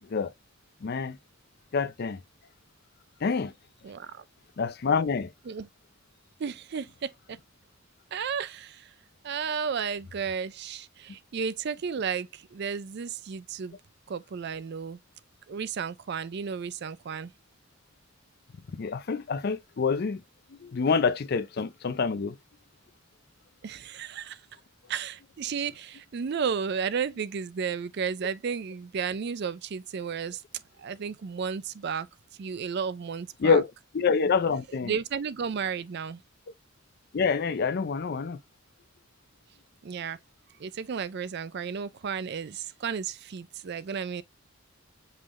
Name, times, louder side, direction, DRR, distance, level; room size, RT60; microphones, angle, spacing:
voice 1, 0.8-1.2 1.7-2.2 3.2-3.5 4.6-5.3 18.8-20.2 20.6-22.3 33.4-33.7 33.9-34.9 37.1-38.4, left 5 dB, 45° left, 0.4 m, -26 dB
voice 2, 3.8-4.2 5.5-5.7 6.4-7.4 8.1-8.9 9.2-13.8 14.1-15.0 15.5-17.3 23.6-24.4 24.9-30.4 30.8-32.1 32.4-33.6 34.8-36.2 39.8-40.2 40.6-44.2, right 6 dB, 50° right, 0.4 m, -33 dB
5.5 x 3.4 x 2.5 m
head